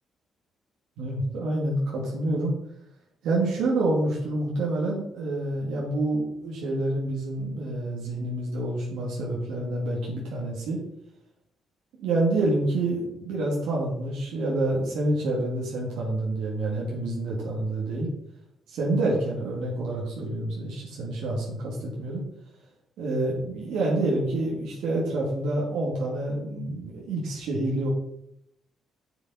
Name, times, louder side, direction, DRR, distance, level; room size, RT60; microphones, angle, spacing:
voice 1, 1.0-2.5 3.2-10.8 12.0-18.1 18.7-22.2 23.0-27.9, right 2 dB, 85° right, -3 dB, 2.2 m, -27 dB
7.9 x 7.2 x 4.1 m, 0.76 s
cardioid pair, 90°, 0 cm